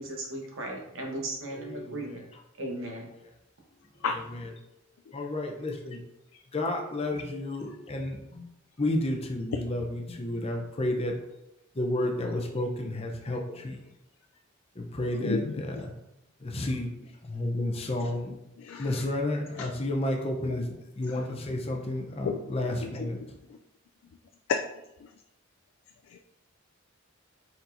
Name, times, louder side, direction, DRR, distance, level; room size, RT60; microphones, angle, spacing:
voice 1, 0.0-2.2 2.6-3.1, right 1 dB, 70° right, 1.0 m, -36 dB
voice 2, 1.5-2.2 2.8-3.0 5.1-6.0 6.5-8.5 8.8-11.2 11.7-13.8 14.8-15.4 16.4-18.4 18.8-23.2, left 1 dB, 30° left, 0.6 m, -31 dB
voice 3, 15.0-15.6 18.6-19.0 19.6-19.7 20.4-20.6 21.0-21.3 22.2-22.5 22.8-23.6 24.5-24.6 25.0-25.1 26.0-26.2, left 5 dB, 80° left, 0.3 m, -33 dB
4.3 x 4.1 x 2.6 m
head